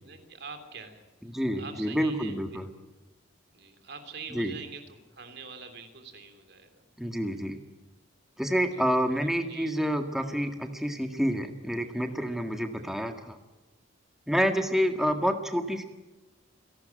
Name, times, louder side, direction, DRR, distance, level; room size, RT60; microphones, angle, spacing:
voice 1, 0.0-1.0 1.3-2.4 3.5-6.8 8.7-8.8 9.2-9.7, right 5 dB, 55° right, 7 dB, 3.2 m, -45 dB
voice 2, 1.3-2.7 4.3-4.5 7.0-7.6 8.4-13.4 14.3-15.8, equal, ahead, 5 dB, 1.8 m, -28 dB
28.0 x 12.0 x 9.0 m, 1.1 s
head